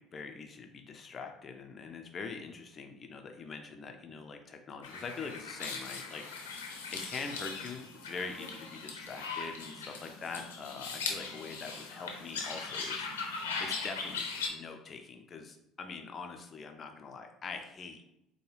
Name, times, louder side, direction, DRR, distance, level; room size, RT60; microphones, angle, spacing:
voice 1, 0.0-6.2 6.9-13.1 13.6-18.0, left 4 dB, 40° left, 5 dB, 0.5 m, -43 dB
sound 1, 4.8-14.5, left 4 dB, 85° left, 0.6 m, -39 dB
4.5 x 2.3 x 3.2 m, 0.83 s
hypercardioid pair, 60°, 0 cm